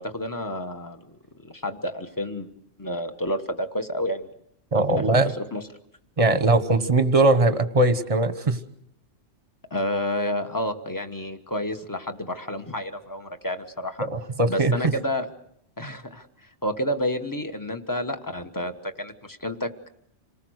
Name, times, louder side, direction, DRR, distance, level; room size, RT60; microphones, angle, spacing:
voice 1, 0.0-2.5 2.8-4.3 4.7-5.6 9.7-14.1 14.5-15.3 15.8-19.9, left 1 dB, 15° left, 7 dB, 1.3 m, -30 dB
voice 2, 4.7-5.3 6.2-8.6 14.1-14.9, right 2 dB, 30° right, 10 dB, 1.2 m, -20 dB
27.5 x 19.5 x 6.5 m, 0.74 s
omnidirectional pair, 1.3 m